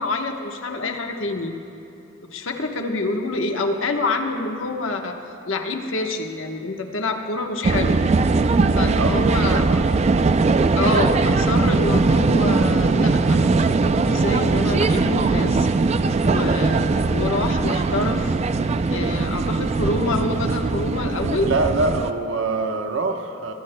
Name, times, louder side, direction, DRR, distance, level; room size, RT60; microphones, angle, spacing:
voice 1, 0.0-1.5 2.3-5.2 5.5-8.0 8.7-9.8 10.7-15.7 16.2-18.4 18.9-21.5, left 2 dB, 80° left, 3 dB, 1.1 m, -26 dB
sound 1, 7.6-22.1, right 3 dB, 35° right, 0.3 m, -20 dB
voice 2, 9.0-9.6 21.5-23.5, right 3 dB, 80° right, 4 dB, 1.0 m, -24 dB
23.5 x 17.5 x 2.2 m, 2.7 s
head